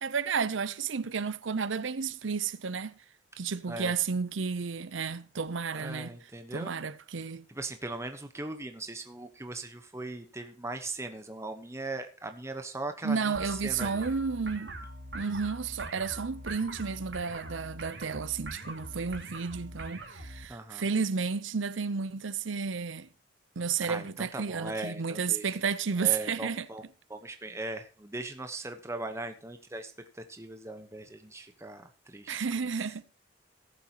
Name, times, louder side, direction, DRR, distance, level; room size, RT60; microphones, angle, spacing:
voice 1, 0.0-2.9 3.4-6.2 6.5-7.4 13.0-14.7 15.1-23.1 23.6-26.7 32.3-33.0, right 5 dB, 90° right, 0.7 m, -32 dB
voice 2, 5.7-6.7 7.5-13.2 13.6-14.0 20.5-20.8 23.9-25.4 26.0-26.8 27.1-32.4, right 2 dB, 15° right, 1.1 m, -39 dB
sound 1, 13.3-20.5, right 1 dB, 65° right, 2.1 m, -43 dB
18.0 x 7.7 x 3.0 m
head